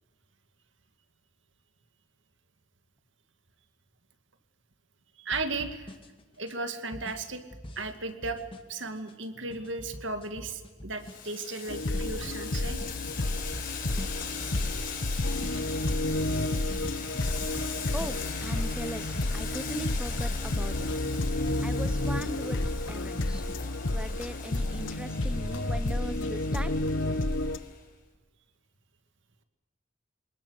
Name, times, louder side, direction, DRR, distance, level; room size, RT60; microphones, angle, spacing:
voice 1, 5.2-5.9 6.4-7.4 7.8-8.4 8.7-12.8, right 3 dB, 75° right, 7 dB, 2.3 m, -35 dB
sound 1, 5.3-19.8 20.3-23.8, equal, 30° left, 2.3 m, -44 dB
Boiling, 11.0-27.8, left 7 dB, 50° left, 4.7 m, -41 dB
sound 2, 11.7-27.6, left 1 dB, 80° left, 1.2 m, -31 dB
voice 2, 17.9-20.9 21.6-22.6 22.9-23.4 23.9-26.7, equal, 5° right, 11 dB, 0.9 m, -39 dB
25.5 x 20.0 x 8.2 m, 1.2 s
head